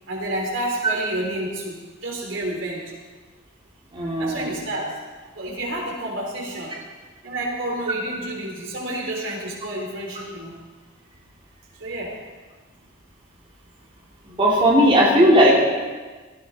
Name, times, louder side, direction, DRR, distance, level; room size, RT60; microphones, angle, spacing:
voice 1, 0.1-2.9 4.2-5.0 5.4-6.7 7.2-10.5 11.8-12.2, right 1 dB, 75° right, -1 dB, 3.9 m, -29 dB
voice 2, 3.9-4.5 14.3-15.5, equal, 30° right, -4 dB, 2.5 m, -16 dB
18.5 x 14.5 x 4.2 m, 1.4 s
head